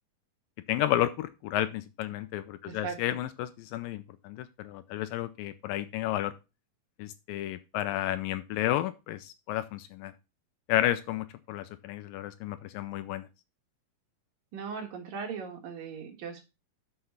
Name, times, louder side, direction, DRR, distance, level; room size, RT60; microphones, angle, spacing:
voice 1, 0.7-6.3 7.0-10.1 10.7-13.3, left 13 dB, 80° left, 12 dB, 2.1 m, -32 dB
voice 2, 2.7-3.2 14.5-16.4, right 6 dB, 70° right, 2 dB, 3.3 m, -38 dB
6.6 x 5.8 x 5.7 m, 0.27 s
omnidirectional pair, 4.3 m